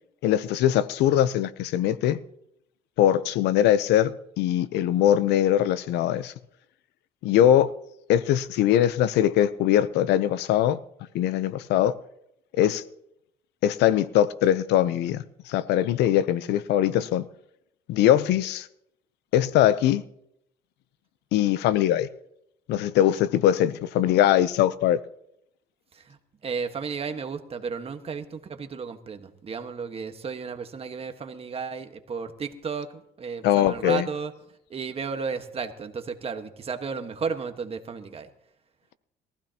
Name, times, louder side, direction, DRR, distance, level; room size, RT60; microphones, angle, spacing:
voice 1, 0.2-2.2 3.0-6.3 7.2-7.7 8.1-10.8 11.1-11.9 12.6-12.8 13.6-17.2 17.9-18.7 19.3-20.0 21.3-22.1 22.7-25.0 33.4-34.0, left 11 dB, 85° left, 0.7 m, -21 dB
voice 2, 26.4-34.3 34.7-38.3, right 5 dB, 35° right, 1.5 m, -33 dB
22.0 x 15.0 x 2.9 m
cardioid pair, 110°, 17 cm